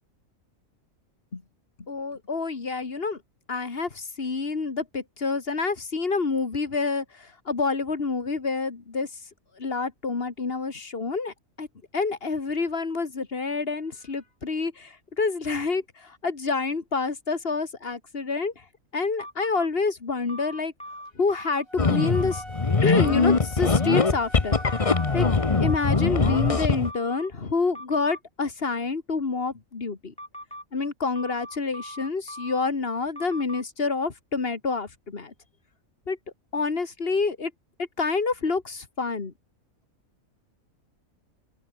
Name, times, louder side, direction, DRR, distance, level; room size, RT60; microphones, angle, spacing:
voice 1, 1.8-3.2 3.5-9.2 9.6-11.7 11.9-18.7 18.9-20.7 21.1-22.4 22.8-24.9 25.1-25.3 25.6-30.1 30.7-35.3 36.1-36.2 36.5-37.5 37.8-39.3, left 4 dB, 45° left, 2.1 m, -28 dB
sound 1, 19.2-19.7 20.3-21.6 22.0-22.4 24.5-25.1 25.7-27.3 27.7-28.2 30.2-30.6 31.2-32.7 33.2-33.6, equal, 5° left, 3.0 m, -40 dB
sound 2, 21.7-25.9, right 1 dB, 20° right, 6.2 m, -41 dB
sound 3, 21.8-26.9, left 4 dB, 25° left, 1.1 m, -22 dB
open air
omnidirectional pair, 1.4 m